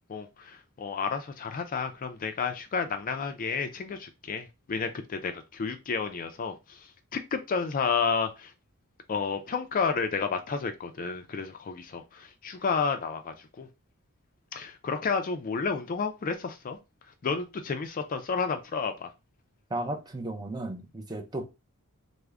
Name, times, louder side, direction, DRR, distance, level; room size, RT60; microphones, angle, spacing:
voice 1, 0.1-8.5 9.1-13.7 14.5-16.8 17.2-19.1, left 5 dB, 40° left, 0.4 m, -31 dB
voice 2, 19.7-21.4, right 1 dB, 15° right, 0.5 m, -34 dB
3.5 x 2.1 x 3.4 m
head